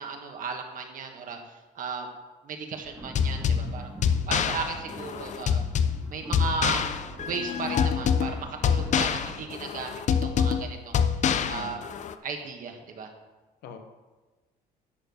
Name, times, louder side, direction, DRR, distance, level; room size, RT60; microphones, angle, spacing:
voice 1, 0.0-2.1 2.4-3.9 4.3-5.6 6.1-6.9 7.3-11.1 11.5-11.8 12.2-13.1, right 5 dB, 50° right, 4 dB, 1.7 m, -35 dB
sound 1, 2.8-9.4, right 1 dB, 10° right, 1.8 m, -43 dB
sound 2, 3.2-12.1, left 7 dB, 45° left, 0.6 m, -26 dB
voice 2, 11.2-11.7 13.6-13.8, left 6 dB, 80° left, 6 dB, 1.3 m, -41 dB
11.5 x 4.6 x 7.0 m, 1.2 s
cardioid pair, 110°, 17 cm